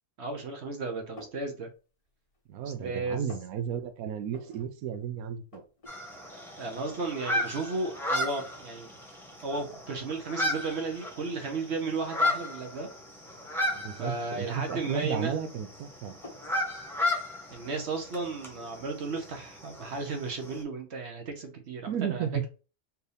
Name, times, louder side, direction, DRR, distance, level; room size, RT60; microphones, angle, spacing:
voice 1, 0.2-1.7 2.6-3.3 6.6-9.0 9.4-12.9 14.0-15.4 17.5-22.5, right 3 dB, 55° right, 0.9 m, -34 dB
sound 1, 1.2-1.5 2.0-2.7 2.9-3.5 4.3-4.7 5.0-5.1 5.3-5.9 6.3-6.4 6.9-7.4 7.9-8.2 9.0-9.1 9.6-11.0 11.4-11.6 12.4-12.7 13.7-14.4 14.7-15.7 16.2-16.5, left 2 dB, 30° left, 0.8 m, -50 dB
voice 2, 2.5-5.6 13.7-16.1 21.9-22.5, right 8 dB, 75° right, 1.1 m, -33 dB
sound 2, 5.9-20.6, left 1 dB, ahead, 1.0 m, -35 dB
4.5 x 2.6 x 3.4 m
omnidirectional pair, 1.6 m